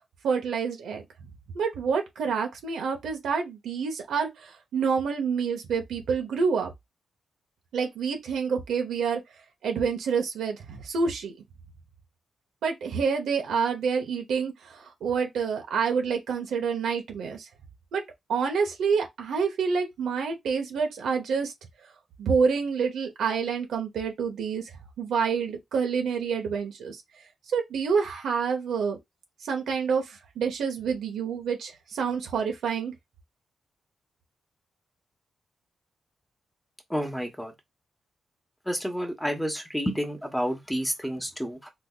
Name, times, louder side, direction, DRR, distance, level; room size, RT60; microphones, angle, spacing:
voice 1, 0.2-1.0 1.5-6.7 7.7-9.2 9.6-11.4 12.6-17.5 17.9-18.0 18.3-21.5 22.2-24.7 25.0-27.0 27.5-29.0 29.4-32.9, right 6 dB, 85° right, 0.9 m, -27 dB
voice 2, 36.9-37.5 38.7-41.7, equal, 5° left, 1.1 m, -30 dB
4.1 x 2.6 x 2.4 m
cardioid pair, 80°, 0 cm